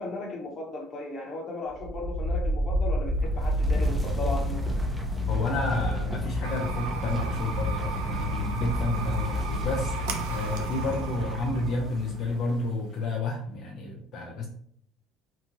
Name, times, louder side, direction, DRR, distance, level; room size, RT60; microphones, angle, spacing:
voice 1, 0.0-4.6, left 2 dB, 45° left, 0 dB, 1.0 m, -36 dB
sound 1, 1.7-12.5, equal, 5° right, 0.7 m, -30 dB
voice 2, 5.3-9.9 10.3-14.5, left 3 dB, 60° left, 0 dB, 0.5 m, -30 dB
sound 2, 6.4-13.1, right 4 dB, 80° right, 0.4 m, -36 dB
3.0 x 2.3 x 2.6 m, 0.62 s
hypercardioid pair, 70°, 0 cm